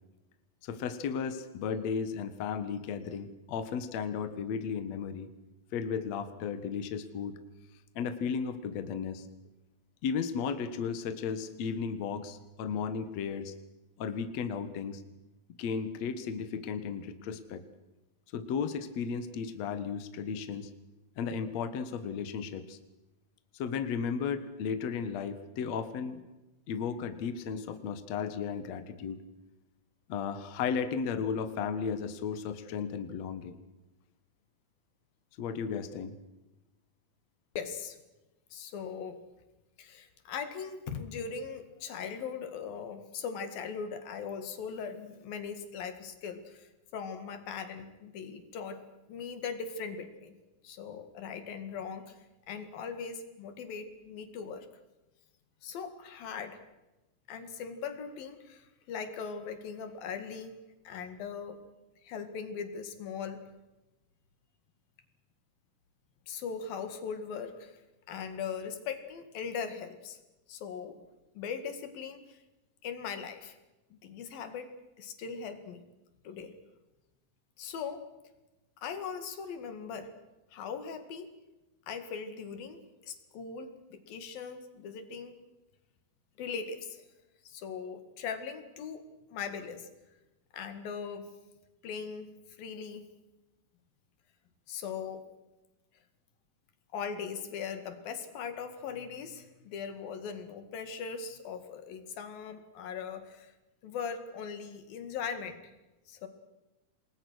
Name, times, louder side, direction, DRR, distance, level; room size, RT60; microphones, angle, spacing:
voice 1, 0.6-5.3 5.7-7.3 8.0-9.3 10.0-13.5 14.0-15.0 15.6-17.6 18.3-20.7 21.2-22.8 23.5-26.2 26.7-29.2 30.1-33.6 35.4-36.1, left 6 dB, 55° left, 9 dB, 2.4 m, -34 dB
voice 2, 37.6-38.0 38.5-39.2 39.8-48.8 49.1-50.4 50.6-52.2 52.5-54.7 55.6-56.6 57.3-60.6 60.9-61.6 62.0-63.4 66.3-67.8 68.1-70.2 70.5-71.0 71.4-72.4 72.8-73.6 74.0-74.7 75.0-75.8 76.2-76.5 77.6-78.0 78.8-80.1 80.5-81.3 81.9-82.8 83.0-85.3 86.4-87.0 87.4-89.0 89.3-89.9 90.5-91.3 91.8-92.3 92.6-93.0 94.7-95.2 96.9-103.5 103.8-105.7 106.1-106.3, left 6 dB, 85° left, 8 dB, 3.9 m, -39 dB
28.5 x 20.5 x 6.4 m, 1.0 s
omnidirectional pair, 4.0 m